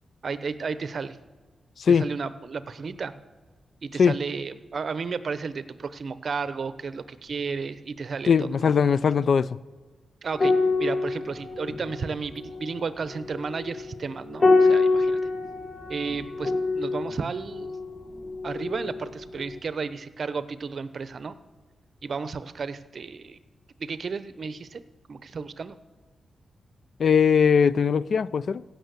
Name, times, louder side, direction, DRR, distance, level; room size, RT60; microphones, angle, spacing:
voice 1, 0.2-1.2 1.9-3.1 3.8-8.7 10.2-15.2 15.9-17.7 18.4-21.3 22.0-23.4 23.8-24.8 25.1-25.8, right 5 dB, 55° right, 0.7 m, -33 dB
voice 2, 8.3-9.6 27.0-28.6, left 6 dB, 65° left, 0.4 m, -20 dB
sound 1, 10.3-19.1 19.4-19.6, left 3 dB, 40° left, 1.6 m, -26 dB
16.0 x 6.6 x 8.1 m
cardioid pair, 80°, 0 cm